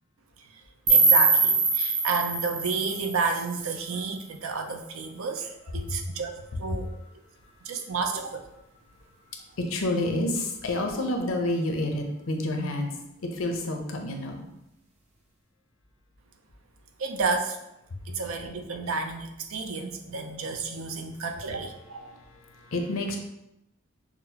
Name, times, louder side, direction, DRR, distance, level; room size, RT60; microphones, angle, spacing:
sound 1, 0.9-3.9, right 4 dB, 35° right, 0.6 m, -23 dB
voice 1, 0.9-6.3 6.6-6.9 7.6-8.5 17.0-17.6 18.1-22.2, right 4 dB, 80° right, 5 dB, 0.5 m, -31 dB
voice 2, 9.6-12.9 13.2-14.4 17.9-18.0 22.1-23.2, left 1 dB, 75° left, 3 dB, 0.6 m, -29 dB
6.0 x 2.0 x 2.8 m, 0.86 s
head